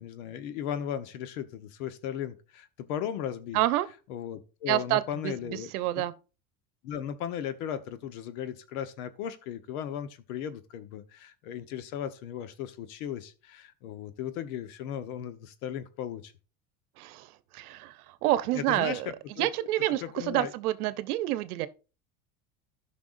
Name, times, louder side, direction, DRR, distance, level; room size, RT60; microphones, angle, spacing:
voice 1, 0.0-3.6 4.1-6.0 6.8-16.3 18.5-19.7 20.0-20.5, left 9 dB, 75° left, 1.2 m, -36 dB
voice 2, 3.5-3.9 4.7-6.1 17.0-19.1 19.4-21.7, right 15 dB, 85° right, 0.8 m, -28 dB
13.5 x 5.9 x 2.6 m
supercardioid pair, 95°, 43 cm